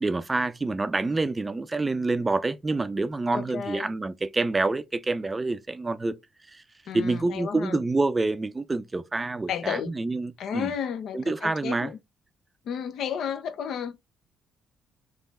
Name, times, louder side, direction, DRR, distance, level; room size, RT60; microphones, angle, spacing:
voice 1, 0.0-6.2 6.5-6.6 6.9-10.7 11.1-11.9, right 3 dB, 25° right, 0.5 m, -27 dB
voice 2, 3.3-3.9 6.9-7.8 9.5-9.9 10.4-12.0 12.7-14.0, left 8 dB, 70° left, 0.7 m, -32 dB
3.5 x 3.3 x 4.1 m
supercardioid pair, 65°, 0 cm